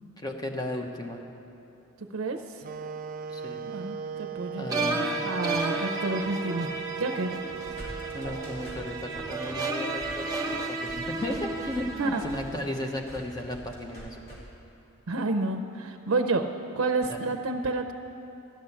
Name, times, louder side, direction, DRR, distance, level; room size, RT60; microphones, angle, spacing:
voice 1, 0.2-1.2 3.3-3.7 4.5-5.4 8.1-14.4 17.1-17.2, left 1 dB, 20° left, 2 dB, 0.9 m, -35 dB
voice 2, 2.1-2.6 3.6-6.7 7.0-7.3 12.0-12.2 15.1-16.4 16.7-17.9, right 3 dB, 85° right, 5 dB, 0.6 m, -29 dB
sound 1, 2.6-10.6, right 7 dB, 40° right, 0.3 m, -39 dB
sound 2, 4.7-12.9, right 3 dB, 15° right, 1.0 m, -33 dB
sound 3, 7.6-14.4, equal, 50° left, 3.3 m, -44 dB
13.5 x 6.3 x 10.0 m, 2.8 s
head